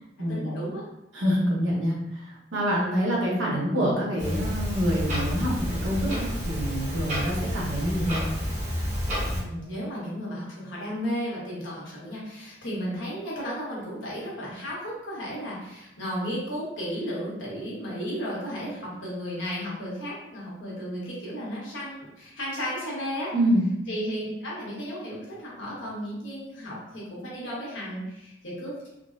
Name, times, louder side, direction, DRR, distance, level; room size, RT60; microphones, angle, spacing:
voice 1, 0.3-0.8 9.3-23.3 23.9-28.9, equal, 80° left, -6 dB, 1.1 m, -34 dB
voice 2, 1.1-8.3 23.3-23.7, equal, 85° right, -4 dB, 0.9 m, -26 dB
Clock, 4.2-9.4, equal, 40° right, 1.0 m, -29 dB
3.6 x 2.0 x 2.5 m, 0.88 s
head